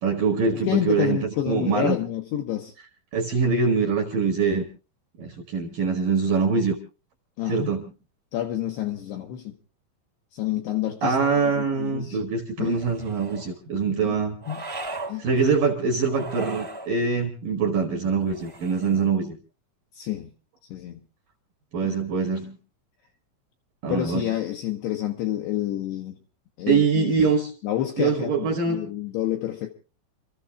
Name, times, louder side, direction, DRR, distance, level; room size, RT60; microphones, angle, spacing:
voice 1, 0.0-2.0 3.1-4.7 5.2-6.8 7.5-7.8 11.0-14.4 15.2-19.3 21.7-22.6 23.8-24.3 26.7-27.5 28.0-28.8, right 5 dB, 65° right, 2.3 m, -24 dB
voice 2, 0.6-2.7 7.4-7.7 8.3-9.6 10.3-11.2 11.4-12.2 12.6-12.8 13.9-14.2 14.5-14.6 15.1-15.3 19.9-20.3 20.7-21.0 21.8-22.0 23.9-26.2 26.6-27.3 27.6-29.7, left 12 dB, 80° left, 2.5 m, -29 dB
sound 1, 12.7-13.5 14.4-15.2 16.0-16.9 18.2-19.1, right 2 dB, 25° right, 0.6 m, -37 dB
29.0 x 14.0 x 2.3 m
omnidirectional pair, 6.0 m